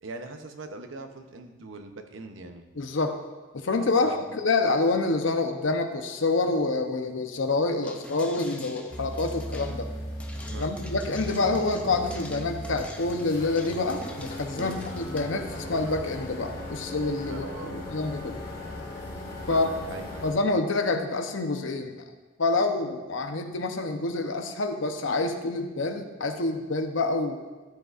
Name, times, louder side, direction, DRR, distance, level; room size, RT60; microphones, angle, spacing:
voice 1, 0.0-2.7 4.0-4.2 10.5-10.7 14.6-14.8 17.3-18.0 19.5-20.3, right 2 dB, 70° right, 6 dB, 0.7 m, -41 dB
voice 2, 2.8-3.2 3.5-9.9 10.6-18.4 19.5-19.7 20.2-21.9 22.4-27.4, left 3 dB, 75° left, 6 dB, 0.8 m, -27 dB
sound 1, 7.8-15.2, left 1 dB, 5° left, 0.5 m, -46 dB
sound 2, 8.9-20.3, left 1 dB, 50° left, 1.5 m, -37 dB
13.0 x 7.8 x 2.5 m, 1.3 s
head